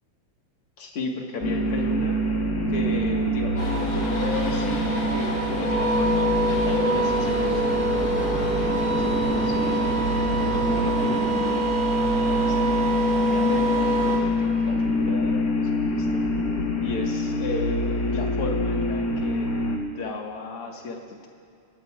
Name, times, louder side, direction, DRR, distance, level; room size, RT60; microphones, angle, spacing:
voice 1, 0.8-2.2 2.7-11.7 12.2-16.2 16.8-21.3, left 3 dB, 50° left, 0 dB, 2.2 m, -34 dB
sound 1, 1.4-19.8, left 1 dB, 70° left, 0.8 m, -26 dB
sound 2, 2.3-11.4, right 7 dB, 70° right, 1.9 m, -36 dB
sound 3, 3.6-14.2, right 2 dB, 90° left, 5.5 m, -26 dB
29.0 x 17.0 x 2.5 m, 2.4 s
omnidirectional pair, 3.8 m